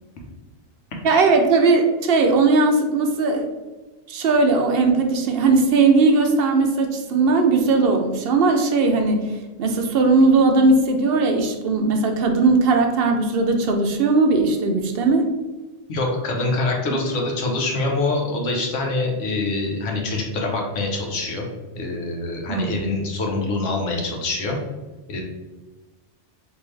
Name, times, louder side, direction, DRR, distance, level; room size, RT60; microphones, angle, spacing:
voice 1, 1.0-3.5 4.1-9.3 9.6-15.3 22.5-22.7, right 3 dB, 65° right, 3 dB, 0.7 m, -18 dB
voice 2, 15.9-21.4 21.7-24.6 25.1-25.2, left 2 dB, 90° left, 0 dB, 1.1 m, -25 dB
3.5 x 2.7 x 3.1 m, 1.2 s
omnidirectional pair, 1.2 m